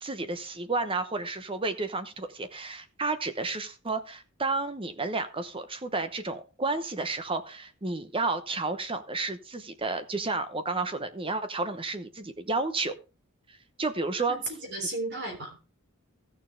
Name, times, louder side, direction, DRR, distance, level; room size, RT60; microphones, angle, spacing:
voice 1, 0.0-12.9 13.5-14.4, right 3 dB, 25° right, 10 dB, 0.9 m, -31 dB
voice 2, 14.3-15.6, right 2 dB, 55° right, 3 dB, 3.3 m, -34 dB
15.0 x 6.9 x 3.5 m, 0.30 s
head